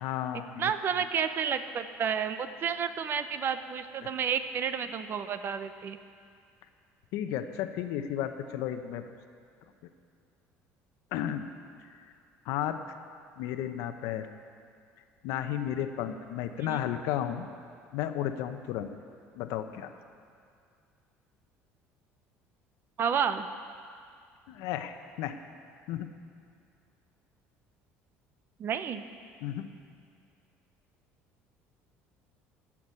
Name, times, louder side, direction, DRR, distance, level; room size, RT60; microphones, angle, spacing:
voice 1, 0.0-0.7 4.0-4.1 7.1-9.0 11.1-11.5 11.9-12.1 12.4-13.0 13.4-14.3 15.2-17.5 17.9-18.9 19.4-19.9 24.5-25.3 25.9-26.1 29.4-29.7, left 10 dB, 80° left, 8 dB, 0.8 m, -33 dB
voice 2, 0.6-6.0 16.6-16.8 23.0-23.5 28.6-29.0, right 7 dB, 45° right, 10 dB, 0.7 m, -31 dB
14.5 x 6.1 x 8.8 m, 2.3 s
cardioid pair, 120°, 5 cm